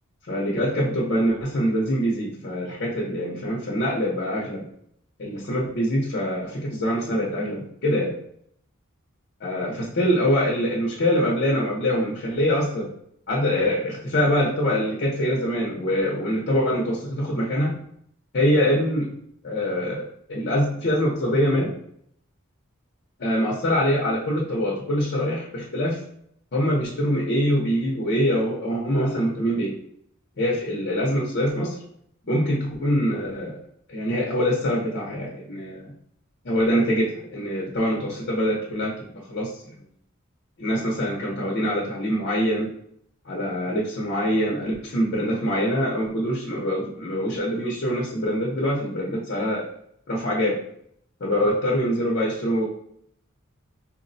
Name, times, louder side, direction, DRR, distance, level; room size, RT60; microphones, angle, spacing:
voice 1, 0.3-4.7 5.2-8.1 9.4-12.9 13.3-17.7 18.3-19.1 19.4-20.0 20.3-21.7 23.2-26.0 26.5-29.7 30.4-31.8 32.3-33.6 33.9-35.9 36.4-39.5 40.6-42.7 43.3-49.7 50.1-50.6 51.2-52.7, equal, 50° left, -3 dB, 0.7 m, -24 dB
4.4 x 2.0 x 2.6 m, 0.69 s
head